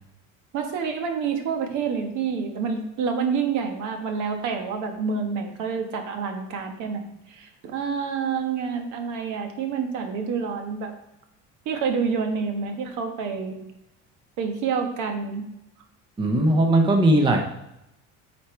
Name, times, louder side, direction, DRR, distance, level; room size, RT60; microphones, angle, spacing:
voice 1, 0.5-10.9 11.6-13.6 14.4-15.5, right 6 dB, 65° right, 5 dB, 1.3 m, -28 dB
voice 2, 16.2-17.4, right 1 dB, 15° right, 3 dB, 0.7 m, -18 dB
8.2 x 4.5 x 4.5 m, 0.86 s
cardioid pair, 160°, 32 cm